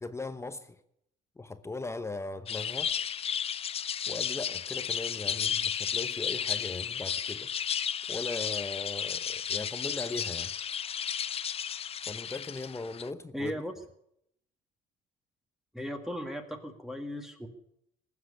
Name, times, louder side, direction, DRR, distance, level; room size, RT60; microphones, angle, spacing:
voice 1, 0.0-0.7 1.4-2.9 4.1-7.5 8.1-10.5 12.0-13.5, left 3 dB, 15° left, 0.9 m, -38 dB
sound 1, 2.5-13.1, left 8 dB, 35° left, 0.5 m, -33 dB
voice 2, 13.3-13.7 15.7-17.5, equal, ahead, 1.9 m, -37 dB
19.0 x 7.7 x 10.0 m
cardioid pair, 110°, 17 cm